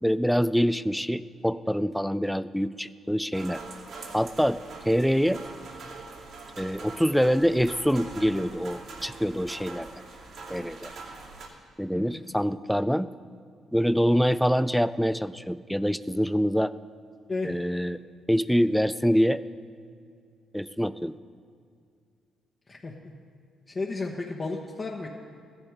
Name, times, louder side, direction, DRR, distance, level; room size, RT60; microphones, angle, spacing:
voice 1, 0.0-3.6 4.1-4.6 4.9-5.4 6.6-10.0 10.5-10.9 11.8-13.1 13.7-16.7 17.4-18.0 18.3-19.4 20.5-21.2, equal, ahead, 15 dB, 0.4 m, -25 dB
sound 1, 3.3-11.5, right 3 dB, 70° right, 2.4 m, -43 dB
voice 2, 11.9-12.2 17.3-17.6 22.7-22.9 23.7-25.1, left 3 dB, 35° left, -3 dB, 1.2 m, -33 dB
15.0 x 11.0 x 5.0 m, 2.3 s
cardioid pair, 90°, 0 cm